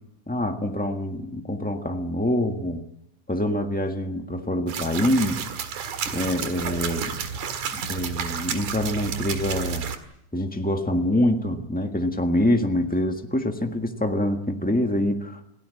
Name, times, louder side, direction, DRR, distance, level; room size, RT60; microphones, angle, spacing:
voice 1, 0.3-2.8 3.3-5.5 6.1-7.2 7.7-9.9 10.3-15.4, left 1 dB, 15° left, 4 dB, 0.3 m, -25 dB
sound 1, 4.7-10.0, right 6 dB, 85° right, 3.3 m, -31 dB
28.0 x 17.5 x 8.4 m, 0.80 s
omnidirectional pair, 3.4 m